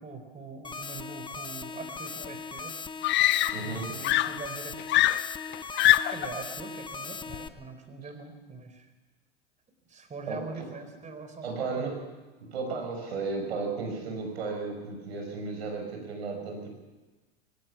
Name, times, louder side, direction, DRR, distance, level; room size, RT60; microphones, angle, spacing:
voice 1, 0.0-2.7 3.6-4.8 6.1-8.9 9.9-11.9, right 4 dB, 25° right, 6 dB, 4.3 m, -42 dB
sound 1, 0.6-7.5, left 4 dB, 15° left, 1.0 m, -39 dB
Screaming, 2.2-2.3 3.0-3.8 4.0-6.3 7.3-7.6, left 15 dB, 35° left, 0.6 m, -24 dB
voice 2, 3.5-3.9 10.3-10.4 11.4-12.0 12.5-16.7, right 4 dB, 75° right, 3 dB, 6.1 m, -34 dB
21.0 x 17.5 x 7.2 m, 1.2 s
hypercardioid pair, 85°, 32 cm